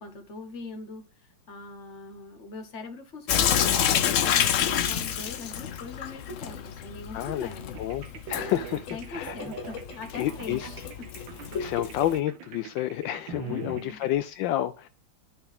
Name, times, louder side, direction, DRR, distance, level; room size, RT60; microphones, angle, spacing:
voice 1, 0.0-7.8 8.9-10.8 13.4-14.0, left 3 dB, 40° left, 1.6 m, -41 dB
Sink (filling or washing) / Drip, 3.3-12.2, left 9 dB, 60° left, 0.8 m, -29 dB
voice 2, 7.1-7.5 7.8-8.0 8.3-9.4 10.2-10.7 11.6-14.9, left 13 dB, 80° left, 1.3 m, -29 dB
sound 1, 7.7-14.1, right 9 dB, 85° right, 1.6 m, -43 dB
12.5 x 4.3 x 3.5 m
omnidirectional pair, 2.1 m